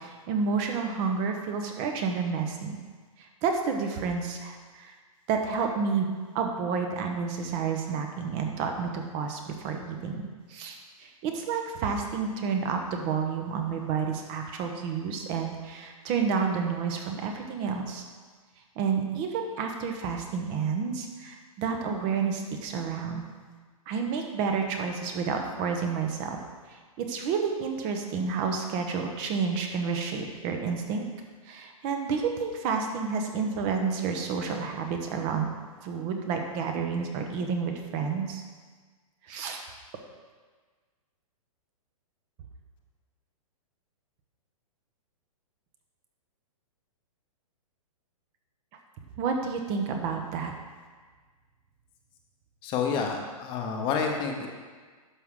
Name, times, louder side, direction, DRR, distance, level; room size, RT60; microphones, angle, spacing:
voice 1, 0.0-2.8 3.2-4.9 5.3-18.0 18.8-23.2 23.9-26.4 26.7-31.0 31.5-35.5 35.8-38.4 39.2-39.6 49.2-50.5, right 5 dB, 30° right, 3 dB, 1.0 m, -30 dB
voice 2, 52.6-54.5, left 6 dB, 25° left, 2 dB, 0.9 m, -29 dB
11.0 x 6.0 x 3.7 m, 1.5 s
hypercardioid pair, 145°, 19 cm